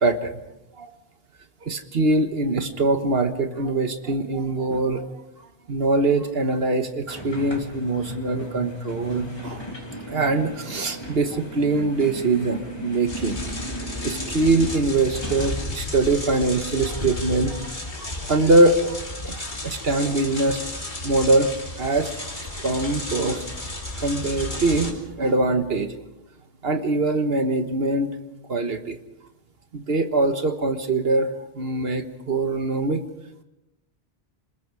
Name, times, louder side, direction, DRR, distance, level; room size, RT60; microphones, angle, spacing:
voice 1, 0.0-0.4 0.8-0.9 1.6-5.1 5.7-9.6 10.1-13.4 14.0-19.0 19.2-21.5 21.8-22.1 22.6-23.5 24.0-26.0 26.6-28.1 28.5-29.0 29.7-31.3 31.5-33.0, right 2 dB, 70° right, 7 dB, 1.6 m, -23 dB
sound 1, 7.1-15.6, equal, 25° left, 2.9 m, -36 dB
sound 2, 13.1-24.9, left 2 dB, 50° left, 2.9 m, -33 dB
27.0 x 20.5 x 4.8 m, 0.91 s
omnidirectional pair, 1.1 m